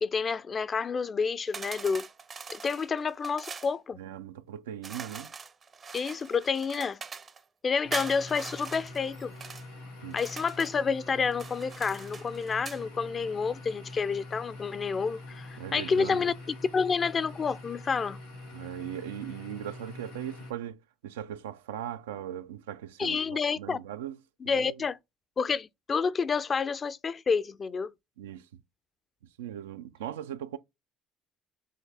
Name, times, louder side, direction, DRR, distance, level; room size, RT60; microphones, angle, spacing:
voice 1, 0.0-2.1 2.5-4.0 5.9-7.0 7.6-9.3 10.1-16.3 16.7-18.2 23.0-23.8 24.4-25.0 25.4-27.9, left 5 dB, 40° left, 0.4 m, -29 dB
sound 1, 1.5-3.7 4.8-7.4 7.9-9.7 10.1-10.8 11.3-12.8, right 5 dB, 40° right, 0.6 m, -42 dB
voice 2, 4.0-5.3 10.0-10.2 15.6-16.3 18.5-24.2 24.4-24.8 28.2-28.5 29.4-30.6, right 10 dB, 90° right, 0.3 m, -39 dB
sound 2, 7.8-20.5, left 2 dB, 85° left, 2.3 m, -45 dB
5.5 x 2.8 x 3.3 m
hypercardioid pair, 65°, 0 cm